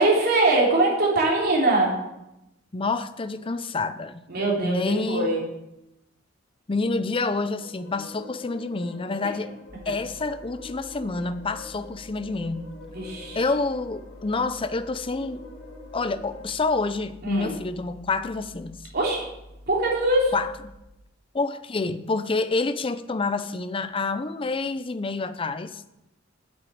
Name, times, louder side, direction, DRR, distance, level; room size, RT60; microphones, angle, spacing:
voice 1, 0.0-1.9 4.3-5.4 12.9-13.4 17.2-17.5 18.9-19.2 19.7-20.4, right 2 dB, 55° right, -3 dB, 3.4 m, -22 dB
voice 2, 2.7-4.2 4.6-5.4 6.7-9.5 9.9-12.7 13.3-15.4 15.9-18.8 20.3-20.5 21.3-25.8, left 3 dB, 25° left, 12 dB, 0.5 m, -28 dB
sound 1, 7.2-16.5, left 2 dB, 65° left, 2.9 m, -45 dB
sound 2, 9.7-20.8, equal, 35° right, 2.9 m, -48 dB
8.7 x 6.6 x 8.4 m, 0.90 s
head